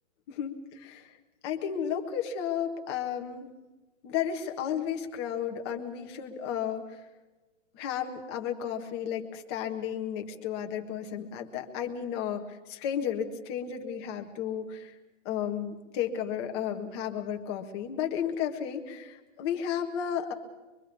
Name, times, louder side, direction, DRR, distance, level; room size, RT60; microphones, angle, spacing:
voice 1, 0.3-1.2 1.4-3.5 4.0-7.0 7.7-14.9 15.2-20.3, left 8 dB, 20° left, 3 dB, 1.5 m, -33 dB
24.5 x 23.5 x 5.4 m, 1.2 s
hypercardioid pair, 165°, 37 cm